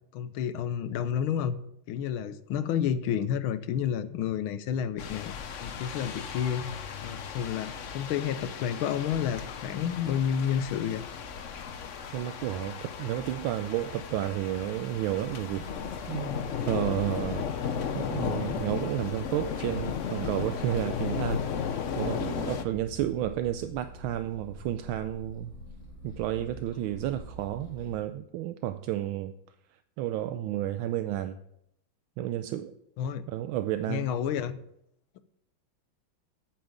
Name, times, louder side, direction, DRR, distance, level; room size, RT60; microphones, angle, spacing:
voice 1, 0.1-1.6 1.9-5.3 5.6-6.7 7.0-11.0 33.0-33.3 33.9-34.6, left 8 dB, 85° left, 13 dB, 1.6 m, -30 dB
sound 1, 5.0-22.6, left 7 dB, 55° left, 0.8 m, -35 dB
voice 2, 12.1-17.5 17.9-21.4 22.0-25.5 26.0-29.3 30.0-31.4 32.2-32.7 33.3-34.1, right 12 dB, 80° right, 11 dB, 1.4 m, -31 dB
sound 2, 14.9-28.0, equal, 40° left, 3.2 m, -47 dB
8.8 x 7.8 x 7.3 m, 0.77 s
omnidirectional pair, 2.2 m